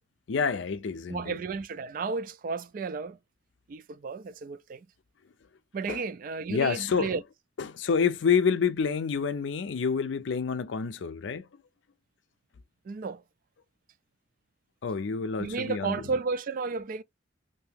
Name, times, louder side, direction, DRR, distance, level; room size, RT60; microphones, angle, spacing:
voice 1, 0.3-1.4 5.9-6.0 6.5-7.1 7.6-11.5 14.8-16.0, left 6 dB, 75° left, 0.4 m, -28 dB
voice 2, 1.1-3.2 3.7-4.9 5.7-7.2 12.9-13.2 15.4-17.0, right 4 dB, 45° right, 0.3 m, -33 dB
2.8 x 2.7 x 3.4 m
head